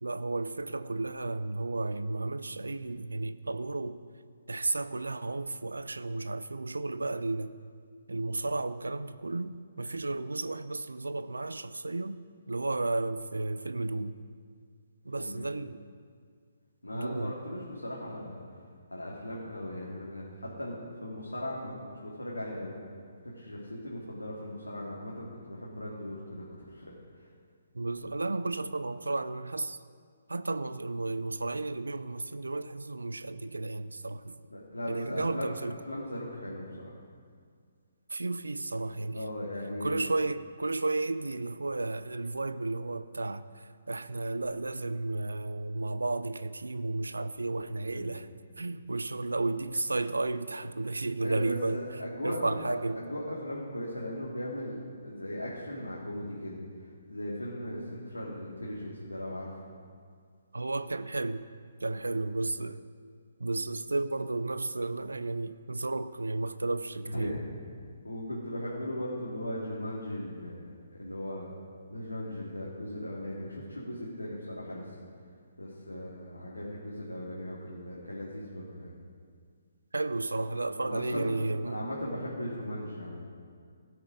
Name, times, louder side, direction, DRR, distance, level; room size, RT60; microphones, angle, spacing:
voice 1, 0.0-4.0 4.5-7.5 8.1-12.2 12.5-14.2 15.0-15.8 16.9-17.3 27.7-29.8 30.3-34.4 34.9-35.7 38.1-39.2 39.8-48.3 48.6-51.8 52.2-53.0 60.5-61.4 61.8-62.8 63.4-67.4 79.9-81.9, right 2 dB, 75° right, 0.5 m, -33 dB
voice 2, 16.8-18.4 18.9-22.7 23.2-27.3 34.5-35.6 35.9-37.0 39.1-40.0 47.9-48.1 51.2-54.8 55.0-59.5 62.1-62.2 67.0-67.5 68.0-70.7 71.0-71.5 71.9-75.0 75.6-78.9 80.8-81.3 81.7-83.2, left 1 dB, 85° left, 2.3 m, -38 dB
17.0 x 8.0 x 5.1 m
figure-of-eight pair, 135°, 0 cm